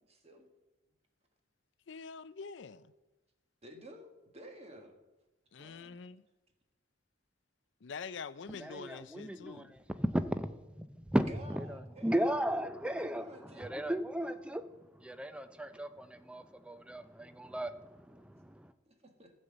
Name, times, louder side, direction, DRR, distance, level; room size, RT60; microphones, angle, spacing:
voice 1, 0.1-0.5 3.6-4.9 5.6-6.0 11.2-12.3 12.8-13.7 18.9-19.3, equal, 30° right, 1.4 m, -52 dB
voice 2, 1.9-2.9 5.5-6.2 7.8-9.8, left 5 dB, 65° left, 0.5 m, -45 dB
voice 3, 8.6-9.6 10.0-14.7 15.0-18.7, equal, 5° right, 0.5 m, -35 dB
13.0 x 5.5 x 7.8 m
head